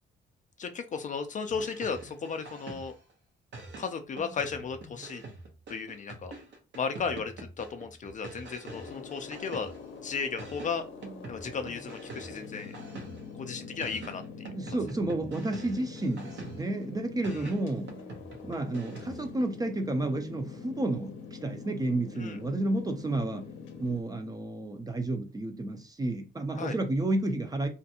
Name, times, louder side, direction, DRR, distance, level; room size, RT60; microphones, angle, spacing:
voice 1, 0.6-2.9 3.8-5.2 5.7-6.3 6.7-9.7 10.0-10.8 11.3-12.7 13.3-14.5 17.3-17.5 22.2-22.4 26.5-26.8, left 5 dB, 40° left, 7 dB, 0.4 m, -35 dB
sound 1, 1.5-3.1 3.5-10.0 10.4-13.4 13.8-16.8 17.2-19.3, right 3 dB, 65° right, 0.8 m, -45 dB
sound 2, 8.6-24.0, left 5 dB, 80° left, 0.6 m, -45 dB
voice 2, 14.5-17.9 18.4-23.5 23.8-27.7, right 2 dB, 20° right, 6 dB, 0.5 m, -31 dB
2.5 x 2.2 x 2.7 m, 0.31 s
cardioid pair, 90°, 20 cm